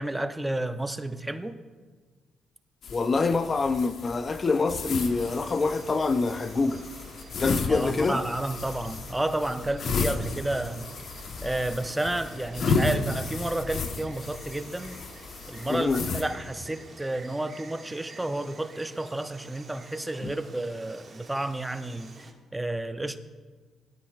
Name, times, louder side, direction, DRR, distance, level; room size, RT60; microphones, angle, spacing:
voice 1, 0.0-1.6 7.7-10.9 11.4-15.0 15.5-23.2, right 1 dB, 10° right, 0.7 m, -31 dB
sound 1, 2.8-16.2, left 4 dB, 60° left, 1.1 m, -33 dB
voice 2, 2.9-6.8 7.4-8.2 15.7-16.0 20.2-20.3, left 4 dB, 35° left, 0.5 m, -26 dB
Insect, 4.8-22.3, right 3 dB, 40° right, 1.9 m, -49 dB
18.5 x 12.0 x 2.4 m
cardioid pair, 90°, 0 cm